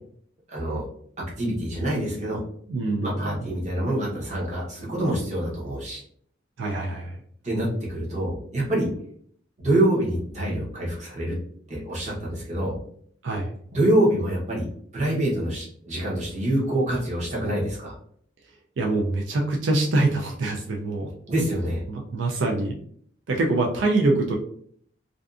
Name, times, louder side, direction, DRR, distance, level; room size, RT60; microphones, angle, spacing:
voice 1, 0.5-0.9 1.4-2.4 3.0-6.0 7.4-8.9 9.6-11.4 11.7-12.8 13.7-14.7 14.9-18.0 21.3-21.8, right 1 dB, 40° right, -4 dB, 0.8 m, -25 dB
voice 2, 2.7-3.5 6.6-7.2 13.2-13.5 18.8-21.1 21.9-22.8 23.3-24.4, right 2 dB, 85° right, 0 dB, 0.4 m, -24 dB
2.5 x 2.3 x 2.4 m, 0.62 s
head